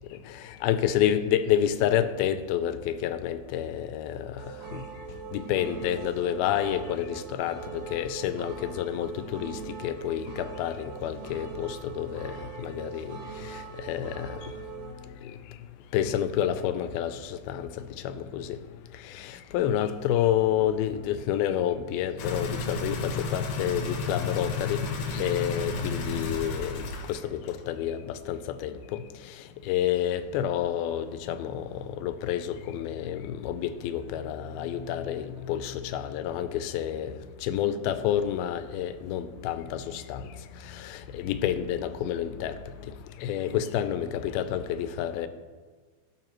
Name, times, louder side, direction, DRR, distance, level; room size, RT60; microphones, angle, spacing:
voice 1, 0.3-4.4 4.7-4.8 5.3-14.5 15.2-15.3 15.9-18.6 19.1-24.9 25.1-29.0 29.7-40.2 40.6-42.6 42.8-42.9 43.2-45.3, left 10 dB, 85° left, 11 dB, 2.4 m, -29 dB
sound 1, 4.4-14.9, right 6 dB, 80° right, 1.1 m, -41 dB
sound 2, 22.2-27.2 27.5-27.6, left 3 dB, 70° left, 2.0 m, -32 dB
17.0 x 6.9 x 3.0 m, 1.4 s
omnidirectional pair, 4.3 m